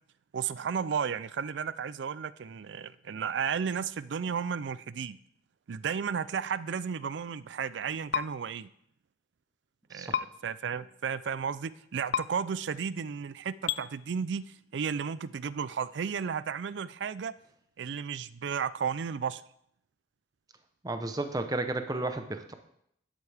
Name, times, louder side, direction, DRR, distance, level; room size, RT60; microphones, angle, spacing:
voice 1, 0.3-5.2 5.7-8.7 9.9-14.4 14.7-17.3 17.8-19.4, right 6 dB, 70° right, 17 dB, 0.4 m, -33 dB
sound 1, 8.1-8.3 10.1-10.2 12.1-12.2 13.7-13.8, left 8 dB, 60° left, 0.4 m, -28 dB
voice 2, 20.8-22.5, right 2 dB, 20° right, 7 dB, 0.7 m, -33 dB
11.5 x 8.3 x 3.4 m, 0.71 s
head